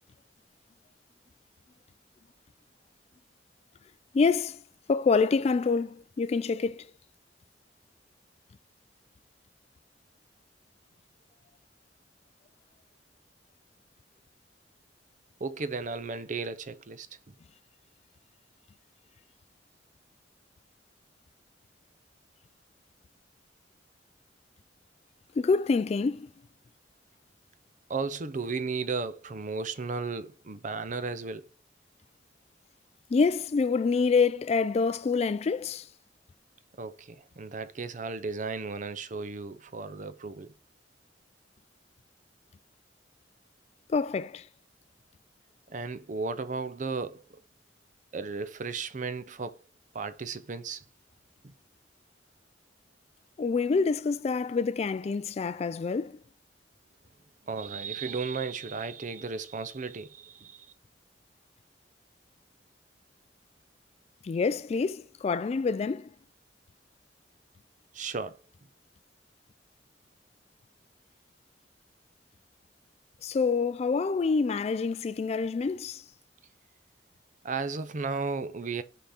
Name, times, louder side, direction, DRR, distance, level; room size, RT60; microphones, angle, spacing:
voice 1, 4.1-4.6 4.9-6.9 25.4-26.3 33.1-35.9 43.9-44.5 53.4-56.2 64.2-66.1 73.2-76.0, left 4 dB, 35° left, 0.3 m, -26 dB
voice 2, 15.4-17.1 27.9-31.4 36.8-40.5 45.7-47.2 48.1-49.6 49.9-50.8 51.4-51.5 57.5-60.7 67.9-68.4 77.4-78.8, right 4 dB, 45° right, 0.6 m, -34 dB
5.8 x 5.0 x 4.1 m
head